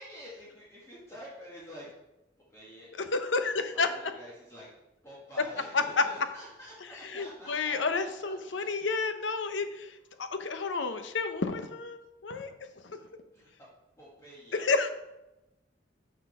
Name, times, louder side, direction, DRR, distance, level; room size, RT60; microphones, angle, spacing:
voice 1, 0.0-1.9 2.5-2.9 3.7-4.7 5.0-8.8 10.1-10.2 12.9-13.1 13.3-13.5 14.0-14.7, equal, 15° left, -7 dB, 1.7 m, -48 dB
voice 2, 3.1-3.9 5.7-6.0 7.0-12.5 12.8-13.0 14.5-14.9, left 4 dB, 80° left, 9 dB, 0.8 m, -30 dB
6.3 x 6.2 x 5.5 m, 0.95 s
head